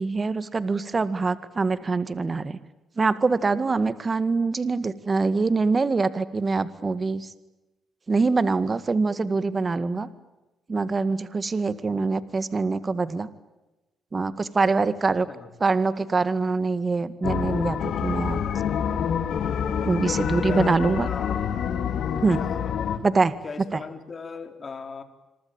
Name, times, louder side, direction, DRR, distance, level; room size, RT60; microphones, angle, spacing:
voice 1, 0.0-2.6 3.0-7.3 8.1-10.1 10.7-13.3 14.1-15.3 15.6-18.4 19.8-21.1 22.2-22.4 23.0-23.3 23.7-23.8, right 4 dB, 30° right, 14 dB, 1.9 m, -24 dB
sound 1, 17.2-23.0, left 8 dB, 65° left, 2.8 m, -27 dB
voice 2, 20.4-21.4 22.2-22.6 23.4-25.0, left 5 dB, 35° left, 9 dB, 4.0 m, -38 dB
26.5 x 24.0 x 8.9 m, 1.0 s
cardioid pair, 90°, 0 cm